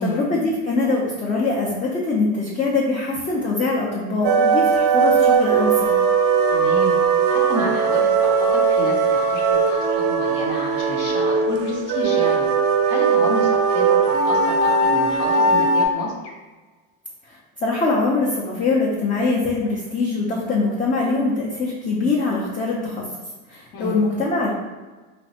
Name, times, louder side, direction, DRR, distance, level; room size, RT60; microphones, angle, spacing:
voice 1, 0.0-5.9 17.3-23.0 23.5-24.5, left 3 dB, 25° left, -4 dB, 0.5 m, -23 dB
sound 1, 4.2-15.9, right 4 dB, 80° right, 0.5 m, -19 dB
voice 2, 6.5-7.0 7.3-12.5 12.9-16.3 23.7-24.0, left 1 dB, 65° left, -1 dB, 0.8 m, -30 dB
3.2 x 2.0 x 2.8 m, 1.3 s
supercardioid pair, 105°, 35 cm